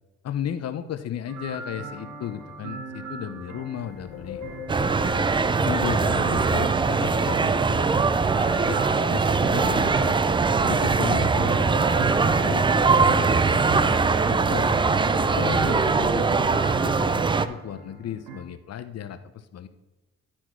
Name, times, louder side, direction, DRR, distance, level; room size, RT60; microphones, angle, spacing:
voice 1, 0.2-4.4 5.7-8.0 8.4-8.8 9.1-10.2 10.6-13.8 14.3-14.7 15.1-19.7, left 10 dB, 55° left, 11 dB, 0.7 m, -34 dB
sound 1, 1.3-18.4, right 3 dB, 80° right, 1.8 m, -39 dB
Wind, 3.8-16.5, left 4 dB, 75° left, 1.9 m, -39 dB
sound 2, 4.7-17.5, right 4 dB, 15° right, 0.3 m, -22 dB
11.5 x 4.3 x 4.5 m, 1.1 s
cardioid pair, 90°, 30 cm